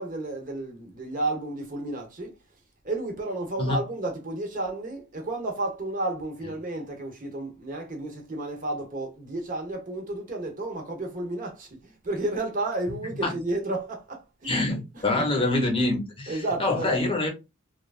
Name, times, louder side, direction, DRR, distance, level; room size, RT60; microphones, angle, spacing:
voice 1, 0.0-2.3 2.8-15.3 16.3-17.0, right 2 dB, 40° right, 0.8 m, -32 dB
voice 2, 14.4-17.3, left 2 dB, 25° left, 0.8 m, -25 dB
3.1 x 2.3 x 2.3 m
head